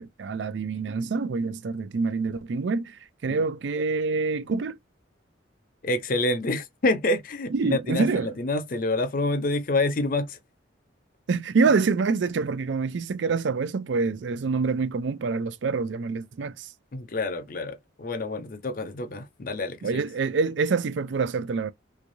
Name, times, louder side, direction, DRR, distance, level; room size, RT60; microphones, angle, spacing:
voice 1, 0.0-4.8 7.5-8.3 11.3-16.7 19.8-21.7, right 4 dB, 75° right, 0.4 m, -26 dB
voice 2, 5.8-10.4 16.9-20.0, left 2 dB, 45° left, 0.5 m, -27 dB
3.4 x 3.2 x 2.6 m
head